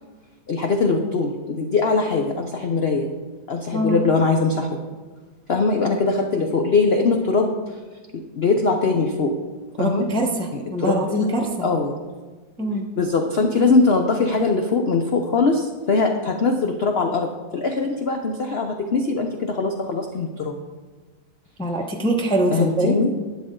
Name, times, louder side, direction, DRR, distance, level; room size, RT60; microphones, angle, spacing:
voice 1, 0.5-3.1 3.5-4.7 5.5-7.5 8.3-9.3 9.8-10.1 10.5-11.3 11.6-11.9 13.0-20.6 22.5-23.3, left 3 dB, 50° left, 4 dB, 0.7 m, -21 dB
voice 2, 9.8-11.5 12.6-12.8 21.6-23.0, right 1 dB, 5° left, 1 dB, 0.7 m, -23 dB
12.0 x 9.4 x 3.8 m, 1.3 s
omnidirectional pair, 1.9 m